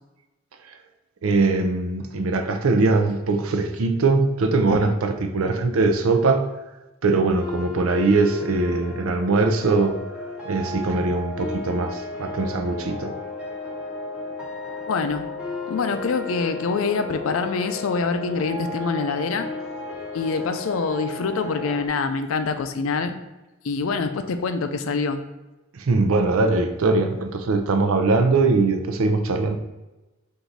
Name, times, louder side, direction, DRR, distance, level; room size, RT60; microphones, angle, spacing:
voice 1, 1.2-6.5 7.0-10.0 10.5-13.1 25.7-29.6, right 3 dB, 85° right, 7 dB, 0.5 m, -21 dB
sound 1, 7.4-21.9, left 2 dB, 5° right, 0.8 m, -34 dB
voice 2, 14.9-15.3 15.7-19.5 20.1-23.1 23.6-25.2, left 4 dB, 70° left, 9 dB, 0.4 m, -25 dB
4.6 x 2.6 x 3.9 m, 1.1 s
head